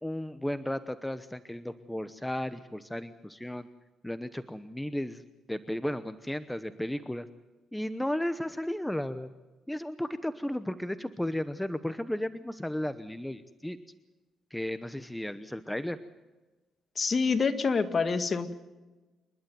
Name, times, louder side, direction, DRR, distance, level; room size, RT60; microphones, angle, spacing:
voice 1, 0.0-3.7 4.0-5.2 5.5-7.3 7.7-9.3 9.7-13.8 14.5-16.0, left 1 dB, 5° left, 11 dB, 0.9 m, -34 dB
voice 2, 17.0-18.5, left 5 dB, 40° left, 9 dB, 1.8 m, -27 dB
27.5 x 12.0 x 9.5 m, 1.2 s
cardioid pair, 90°, 0 cm